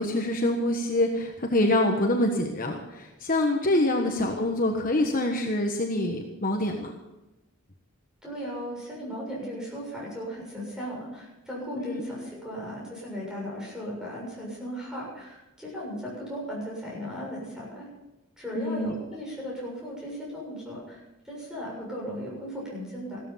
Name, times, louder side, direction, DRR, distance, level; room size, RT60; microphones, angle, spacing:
voice 1, 0.0-6.9 11.7-12.1 18.5-18.9, left 1 dB, 40° left, 2 dB, 1.3 m, -26 dB
voice 2, 8.2-17.9 18.4-23.2, equal, 5° right, -4 dB, 7.0 m, -36 dB
15.5 x 13.5 x 5.7 m, 1.0 s
head